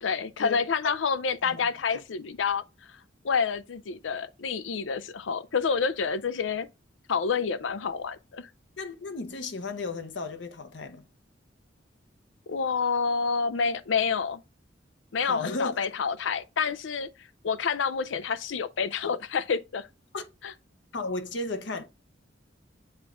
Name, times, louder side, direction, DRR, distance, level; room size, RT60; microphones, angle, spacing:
voice 1, 0.0-2.6 3.2-6.7 7.1-8.5 12.5-14.4 15.1-17.1 17.4-19.9 20.4-20.5, left 5 dB, 90° left, 0.5 m, -28 dB
voice 2, 8.8-11.0 15.2-15.7 20.1-20.2 20.9-21.8, left 3 dB, 65° left, 0.8 m, -34 dB
8.0 x 3.6 x 3.8 m
head